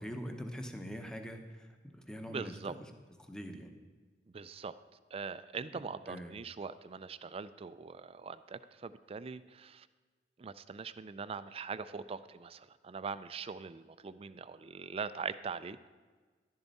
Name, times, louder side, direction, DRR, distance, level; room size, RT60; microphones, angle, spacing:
voice 1, 0.0-1.7 2.1-2.8 3.3-3.7 5.7-5.8 6.1-6.3, equal, 5° left, 5 dB, 0.8 m, -43 dB
voice 2, 2.3-2.8 4.3-4.7 5.1-9.9 10.4-15.9, right 5 dB, 35° right, 14 dB, 0.4 m, -42 dB
11.5 x 10.5 x 4.1 m, 1.4 s
head